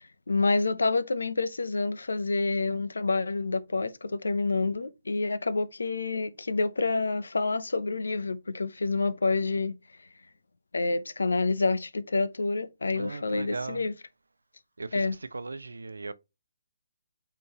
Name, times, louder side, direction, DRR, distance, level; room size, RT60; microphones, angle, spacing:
voice 1, 0.0-9.7 10.7-13.9 14.9-15.2, left 3 dB, 70° left, 0.7 m, -28 dB
voice 2, 12.9-13.8 14.8-15.0 15.3-16.1, right 3 dB, 75° right, 0.7 m, -37 dB
8.4 x 3.9 x 3.0 m
figure-of-eight pair, 140°, 0 cm